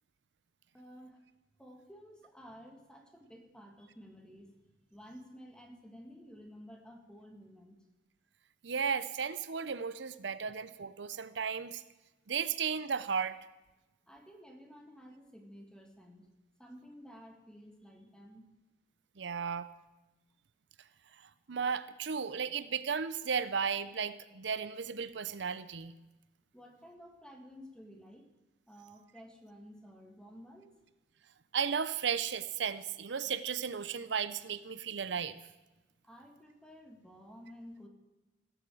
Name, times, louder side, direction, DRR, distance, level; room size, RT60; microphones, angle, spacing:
voice 1, 0.7-1.2 1.6-7.8 10.4-10.5 12.4-12.6 14.1-16.3 16.6-18.4 26.5-28.3 28.7-30.7 36.0-37.9, equal, 5° left, 3 dB, 2.0 m, -53 dB
voice 2, 8.6-11.8 12.3-13.4 19.2-19.7 21.5-25.9 31.5-35.4, right 6 dB, 70° right, 15 dB, 0.7 m, -34 dB
16.5 x 8.0 x 7.7 m, 1.1 s
head